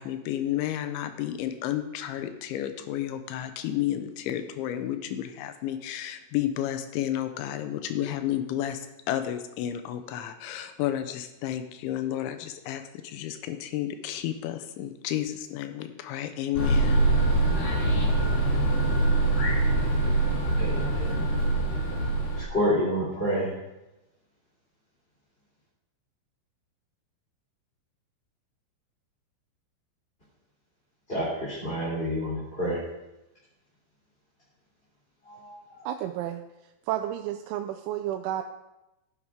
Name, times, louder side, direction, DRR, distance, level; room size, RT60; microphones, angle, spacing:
voice 1, 0.0-17.0, left 12 dB, 80° left, 9 dB, 3.2 m, -31 dB
sound 1, 16.5-22.4, right 2 dB, 60° left, 4.4 m, -24 dB
voice 2, 20.3-21.3 22.3-23.5 31.1-32.8 35.2-35.9, equal, 15° left, -9 dB, 3.0 m, -29 dB
voice 3, 35.9-36.4 36.9-38.4, right 12 dB, 90° right, 6 dB, 3.0 m, -31 dB
14.5 x 10.5 x 3.7 m, 0.97 s
omnidirectional pair, 5.3 m